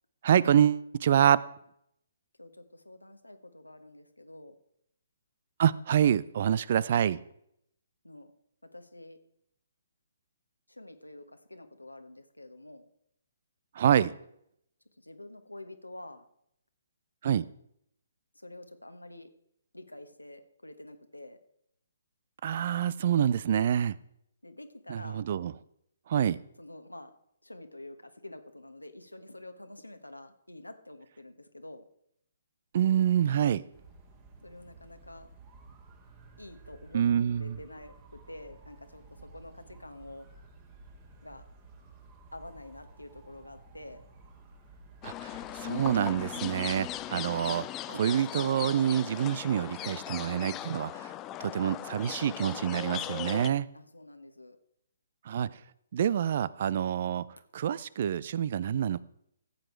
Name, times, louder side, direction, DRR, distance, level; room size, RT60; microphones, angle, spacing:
voice 1, 0.2-1.4 5.6-7.2 13.8-14.1 17.2-17.5 22.4-24.0 24.9-25.5 26.1-26.4 32.7-33.6 36.9-37.6 45.0-51.1 51.4-53.7 55.3-55.5 55.9-57.3 57.5-59.0, right 9 dB, 45° right, 0.5 m, -27 dB
voice 2, 2.4-4.5 8.0-8.3 8.7-9.2 10.7-12.9 15.0-16.2 18.3-19.3 19.7-21.4 24.4-25.3 26.6-27.1 27.4-31.8 34.4-35.3 36.4-37.0 37.3-40.3 41.2-41.4 42.3-44.0 53.7-54.6, left 1 dB, 90° left, 1.3 m, -48 dB
sound 1, 33.7-47.1, right 3 dB, 25° right, 2.1 m, -54 dB
sound 2, 45.0-53.5, left 13 dB, 20° left, 0.4 m, -38 dB
14.5 x 8.0 x 4.6 m
figure-of-eight pair, 130°, 0 cm